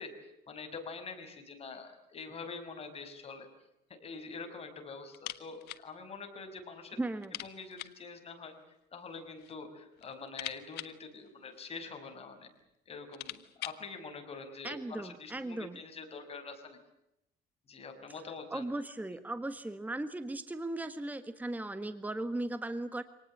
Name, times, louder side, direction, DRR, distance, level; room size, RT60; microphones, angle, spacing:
voice 1, 0.0-3.5 3.9-7.0 7.4-8.5 8.9-12.5 12.9-16.8 17.7-18.7, left 4 dB, 35° left, 5 dB, 5.9 m, -45 dB
sound 1, 5.1-5.9 6.2-6.3 6.6-6.7 7.2-8.1 9.0-9.6 9.9-11.9 12.6-12.7 12.9-13.9, left 15 dB, 80° left, 1.5 m, -45 dB
voice 2, 7.0-7.4 14.6-15.8 18.5-23.0, right 2 dB, 10° right, 10 dB, 1.5 m, -37 dB
26.5 x 19.0 x 8.7 m, 0.84 s
cardioid pair, 110°, 17 cm